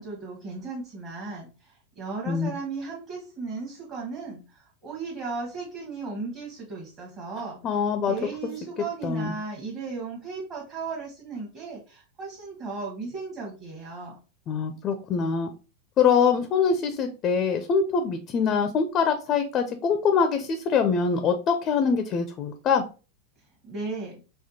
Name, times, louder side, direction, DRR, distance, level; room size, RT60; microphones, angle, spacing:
voice 1, 0.0-7.6 8.1-14.2 23.6-24.1, right 4 dB, 30° right, -3 dB, 0.9 m, -36 dB
voice 2, 7.6-8.1 9.0-9.3 14.5-15.5 16.0-22.8, left 6 dB, 30° left, 7 dB, 0.4 m, -24 dB
4.2 x 2.2 x 2.8 m, 0.34 s
figure-of-eight pair, 90°, 0 cm